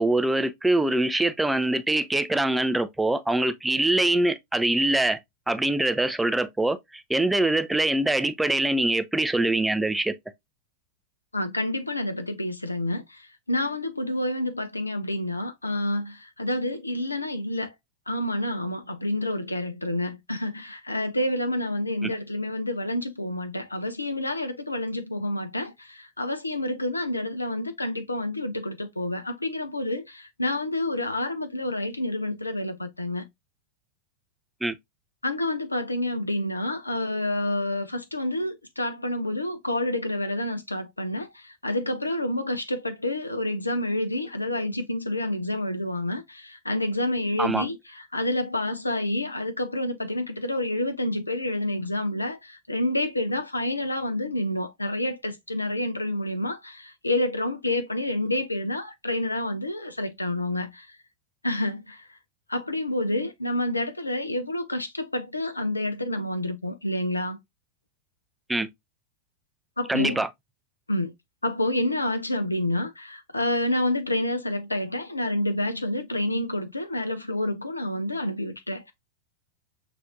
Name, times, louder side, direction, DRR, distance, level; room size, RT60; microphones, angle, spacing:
voice 1, 0.0-5.2 5.5-10.1 22.0-22.1 34.6-34.8 47.4-47.7 68.5-68.7 69.9-70.3, right 2 dB, 5° right, 0.3 m, -24 dB
voice 2, 11.3-17.7 18.1-33.3 35.2-60.9 61.4-62.0 62.5-67.4 69.8-70.2 70.9-71.1 71.4-78.9, left 1 dB, 85° left, 0.5 m, -28 dB
5.7 x 2.5 x 2.4 m
figure-of-eight pair, 90°, 0 cm